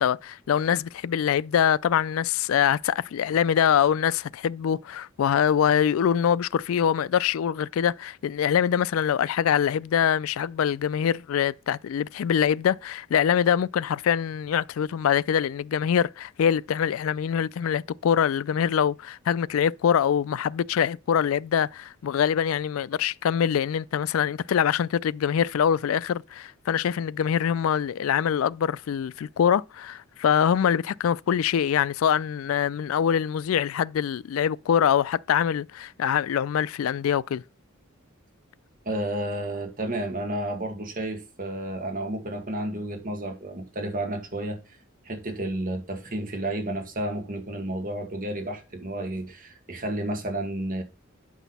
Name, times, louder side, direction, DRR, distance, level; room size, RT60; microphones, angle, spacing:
voice 1, 0.0-37.4, left 8 dB, 75° left, 0.3 m, -24 dB
voice 2, 38.9-44.8 45.0-50.8, right 1 dB, 40° right, 2.0 m, -31 dB
9.0 x 6.1 x 4.1 m
head